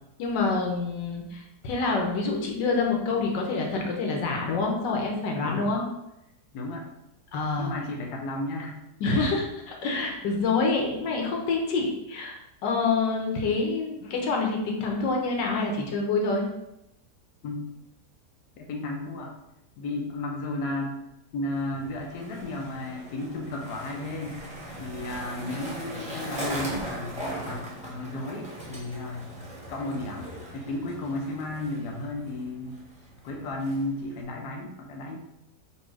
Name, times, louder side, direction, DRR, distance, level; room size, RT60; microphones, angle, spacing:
voice 1, 0.2-5.8 7.3-7.7 9.0-16.4, left 3 dB, 90° left, 1 dB, 1.5 m, -27 dB
voice 2, 5.4-5.7 6.5-6.9 7.6-8.7 17.4-17.6 18.6-19.3 19.8-21.0 21.3-24.4 24.8-29.3 29.7-32.8 33.2-35.2, left 1 dB, 70° left, 1 dB, 1.2 m, -33 dB
Skateboard, 21.5-34.2, equal, 5° right, 0.8 m, -40 dB
4.2 x 2.7 x 4.7 m, 0.86 s
omnidirectional pair, 1.9 m